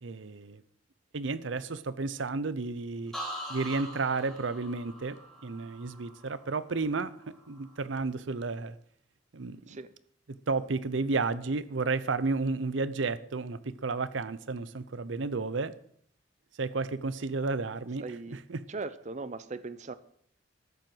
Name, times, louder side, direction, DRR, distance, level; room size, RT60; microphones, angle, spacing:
voice 1, 0.0-0.6 1.1-3.1 3.5-5.1 5.4-8.7 9.3-9.6 10.5-15.7 16.6-18.0 18.5-18.6, right 3 dB, 80° right, 0.7 m, -32 dB
sound 1, 3.1-6.9 7.3-7.8, equal, ahead, 4.4 m, -43 dB
voice 2, 18.0-18.4 18.7-19.9, right 3 dB, 40° right, 0.6 m, -39 dB
13.5 x 7.7 x 7.8 m
head